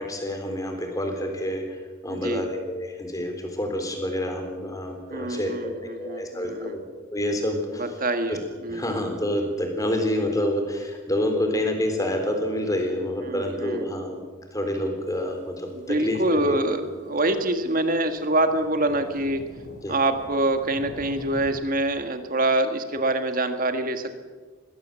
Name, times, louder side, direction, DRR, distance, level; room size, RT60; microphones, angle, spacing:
voice 1, 0.0-1.8 2.0-6.8 7.1-8.0 8.3-8.4 8.7-14.2 14.5-16.6 19.8-20.0, left 1 dB, 15° left, 4 dB, 3.6 m, -28 dB
voice 2, 2.1-2.4 5.1-6.8 7.8-9.0 13.2-13.8 15.7-19.4 19.9-24.2, right 2 dB, 40° right, 7 dB, 1.8 m, -25 dB
sound 1, 15.1-15.2 15.7-15.8 16.3-16.4 17.1-21.5, equal, 55° left, 6.1 m, -44 dB
21.0 x 16.5 x 7.6 m, 1.4 s
head